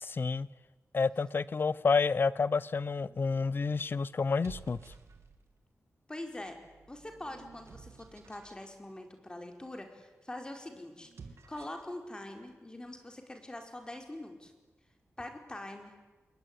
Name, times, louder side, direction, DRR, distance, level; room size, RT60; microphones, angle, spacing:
voice 1, 0.0-0.5 0.9-4.8, left 4 dB, 45° left, 19 dB, 0.9 m, -29 dB
sound 1, 3.0-3.4 4.2-5.6 6.3-8.6 11.0-11.9, right 5 dB, 70° right, 2.9 m, -53 dB
voice 2, 6.1-6.6 6.9-11.1 11.5-14.5 15.2-15.9, left 1 dB, 15° left, 4 dB, 4.8 m, -44 dB
28.0 x 21.5 x 9.7 m, 1.2 s
wide cardioid pair, 115°, 5 cm